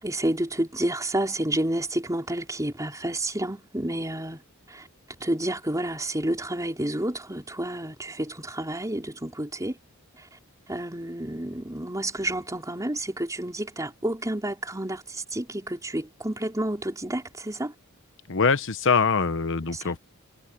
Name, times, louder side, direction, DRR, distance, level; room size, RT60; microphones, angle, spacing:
voice 1, 0.0-4.4 4.7-4.9 5.2-9.8 10.1-10.3 10.7-17.7 19.7-20.0, right 1 dB, 15° right, 4.4 m, -30 dB
voice 2, 18.3-20.0, left 5 dB, 60° left, 1.0 m, -23 dB
head